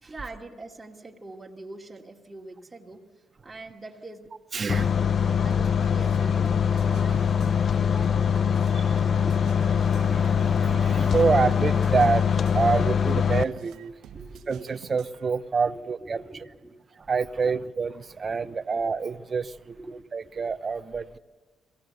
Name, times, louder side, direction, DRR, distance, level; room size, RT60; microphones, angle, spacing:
voice 1, 0.0-3.1 3.4-4.3 5.0-9.8 14.1-14.5 15.7-16.8 17.4-17.5 18.4-18.6 19.7-20.1, right 2 dB, 20° right, -1 dB, 2.6 m, -44 dB
voice 2, 4.5-5.1 8.7-9.1 9.8-14.0 14.5-16.2 17.0-19.8 20.1-21.2, right 5 dB, 40° right, 13 dB, 0.8 m, -27 dB
sound 1, 4.7-13.4, left 7 dB, 50° left, 0.5 m, -23 dB
sound 2, 5.2-15.3, right 8 dB, 80° right, 1.2 m, -47 dB
22.5 x 16.0 x 8.0 m, 1.3 s
cardioid pair, 85°, 0 cm